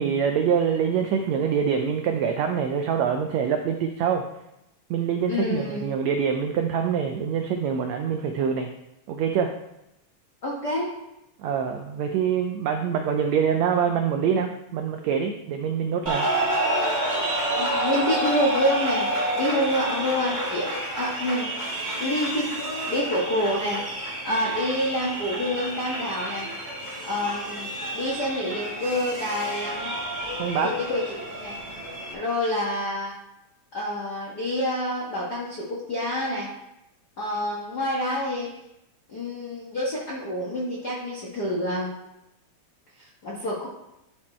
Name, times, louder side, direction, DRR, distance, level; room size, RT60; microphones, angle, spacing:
voice 1, 0.0-4.2 4.9-8.7 9.1-9.5 11.4-16.3 30.4-30.7, right 7 dB, 85° right, 5 dB, 1.5 m, -25 dB
voice 2, 5.3-5.9 10.4-10.9 17.5-22.5 22.9-23.8 24.2-26.5 27.0-30.0 30.6-31.6 32.1-33.1 33.7-36.5 37.2-38.5 39.1-41.9 43.0-43.7, left 1 dB, 65° left, -5 dB, 0.9 m, -28 dB
sound 1, 16.1-32.1, right 1 dB, 20° right, 1.2 m, -29 dB
11.0 x 4.4 x 4.3 m, 0.88 s
omnidirectional pair, 3.8 m